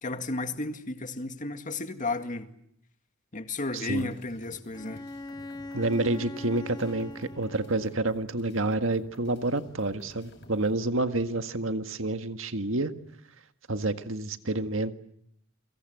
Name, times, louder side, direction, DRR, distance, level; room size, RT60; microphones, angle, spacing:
voice 1, 0.0-2.5 3.3-5.0, left 2 dB, 40° left, 2.1 m, -33 dB
voice 2, 3.7-4.1 5.7-12.9 13.7-14.9, right 2 dB, 70° right, 1.8 m, -29 dB
sound 1, 4.0-10.8, left 1 dB, 60° left, 7.1 m, -53 dB
Bowed string instrument, 4.7-8.2, left 2 dB, 20° left, 1.5 m, -41 dB
29.5 x 23.5 x 8.0 m
head